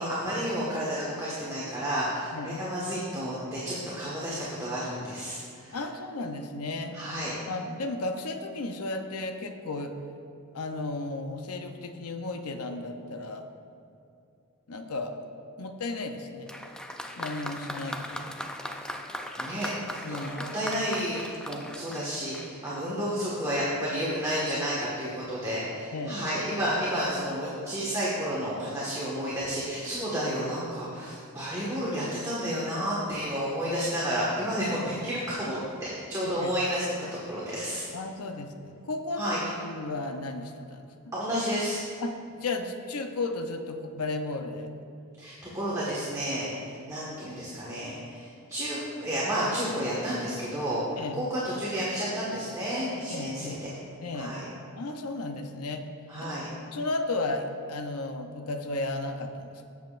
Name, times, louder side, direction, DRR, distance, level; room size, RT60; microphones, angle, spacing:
voice 1, 0.0-5.8 6.9-7.3 19.4-19.7 20.1-37.8 39.2-39.4 41.1-41.8 45.2-53.6 54.1-54.4 56.1-56.5, equal, 15° right, -8 dB, 1.5 m, -31 dB
voice 2, 5.7-7.0 7.5-9.9 10.5-13.5 14.7-15.1 15.6-16.5 17.2-18.4 20.0-20.5 25.9-26.2 36.4-36.5 37.9-40.8 42.0-44.7 51.0-51.2 53.1-53.6 54.0-54.3 54.8-55.8 56.2-59.6, left 2 dB, 90° left, 6 dB, 0.7 m, -34 dB
Applause, 16.5-22.9, equal, 5° left, 0.4 m, -38 dB
16.5 x 7.1 x 2.5 m, 2.6 s
head